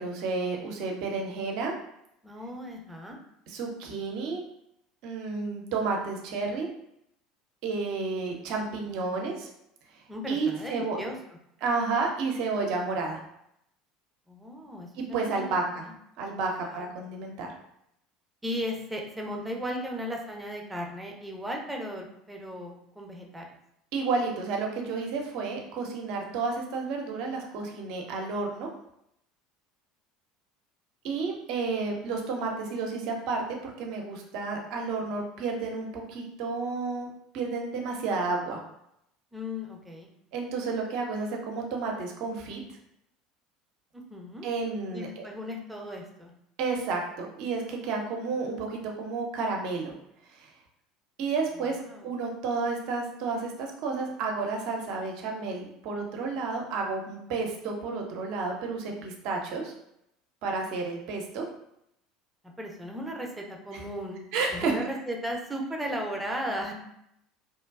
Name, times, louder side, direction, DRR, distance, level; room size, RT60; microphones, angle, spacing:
voice 1, 0.0-1.7 3.5-4.4 5.0-6.7 7.6-9.5 10.3-11.0 11.6-13.2 15.0-15.8 16.2-17.5 23.9-28.7 31.0-38.6 40.3-42.6 44.4-45.2 46.6-49.9 50.3-50.5 51.2-59.7 60.4-61.4 63.7-63.8 64.3-64.7, right 4 dB, 55° right, 1 dB, 0.5 m, -31 dB
voice 2, 2.2-3.2 10.1-11.1 14.3-15.9 16.4-17.0 18.4-23.5 39.3-40.1 43.9-44.5 44.9-46.3 51.8-52.1 62.6-64.2 64.5-66.7, equal, 10° right, 0 dB, 0.6 m, -36 dB
2.9 x 2.2 x 2.3 m, 0.77 s
figure-of-eight pair, 70°, 0 cm